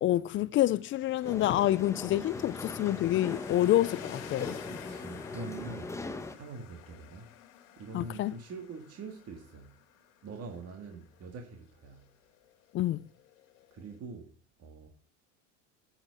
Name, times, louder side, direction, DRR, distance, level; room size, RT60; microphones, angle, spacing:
voice 1, 0.0-4.6 7.9-8.3 12.7-13.1, left 14 dB, 30° left, 0.4 m, -27 dB
sound 1, 0.8-14.0, left 11 dB, 75° left, 1.7 m, -51 dB
sound 2, 1.2-6.4, left 2 dB, 5° left, 0.9 m, -40 dB
voice 2, 4.7-6.0 6.3-7.3 7.8-9.8 10.2-12.1 13.7-14.3 14.6-14.9, right 4 dB, 40° right, 1.9 m, -44 dB
7.7 x 7.5 x 6.1 m
supercardioid pair, 100°, 39 cm